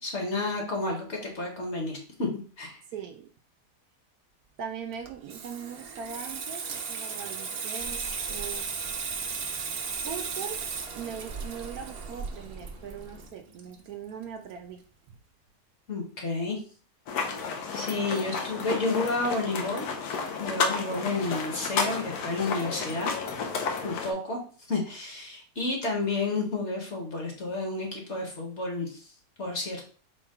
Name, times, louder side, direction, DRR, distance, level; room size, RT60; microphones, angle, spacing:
voice 1, 0.0-2.8 15.9-16.6 17.7-19.9 20.4-23.1 23.8-24.4 24.7-29.1 29.4-29.8, left 3 dB, 50° left, 1 dB, 1.1 m, -31 dB
voice 2, 2.9-3.3 4.6-8.7 10.0-10.6 10.9-14.8, right 7 dB, 70° right, 5 dB, 1.0 m, -40 dB
Water tap faucet / Sink (filling or washing), 4.9-14.2 14.5-14.8, right 5 dB, 90° right, 0.5 m, -36 dB
sound 1, 7.8-13.3, right 3 dB, 40° right, 0.6 m, -44 dB
sound 2, 17.1-24.1, left 5 dB, 80° left, 1.3 m, -32 dB
4.3 x 2.3 x 4.7 m, 0.42 s
omnidirectional pair, 1.8 m